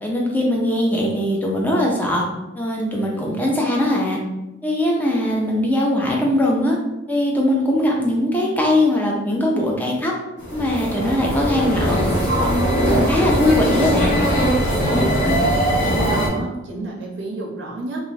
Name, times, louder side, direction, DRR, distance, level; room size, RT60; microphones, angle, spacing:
voice 1, 0.0-2.2 2.5-4.2 4.6-6.8 7.1-10.1 10.5-12.0 12.4-14.2, left 1 dB, 10° left, -2 dB, 0.4 m, -20 dB
sound 1, 10.4-16.3, equal, 55° left, 0.8 m, -20 dB
voice 2, 14.9-15.5 15.8-18.0, right 2 dB, 60° right, -2 dB, 0.5 m, -30 dB
2.5 x 2.4 x 3.2 m, 0.99 s
head